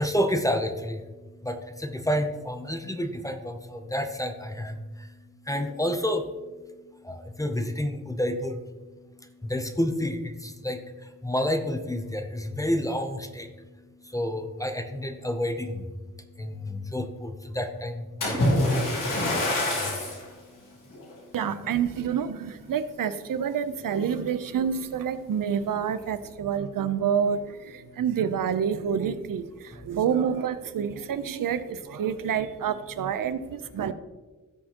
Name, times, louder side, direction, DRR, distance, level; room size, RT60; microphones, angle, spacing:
voice 1, 0.0-21.2 27.9-28.0, equal, 10° left, 6 dB, 0.6 m, -31 dB
Splash splatter, 18.2-20.2 20.9-21.1 21.7-21.8, left 1 dB, 75° left, 3.5 m, -25 dB
voice 2, 21.3-33.9, right 8 dB, 85° right, 12 dB, 0.7 m, -28 dB
16.5 x 6.5 x 2.9 m, 1.3 s
wide cardioid pair, 175°, 32 cm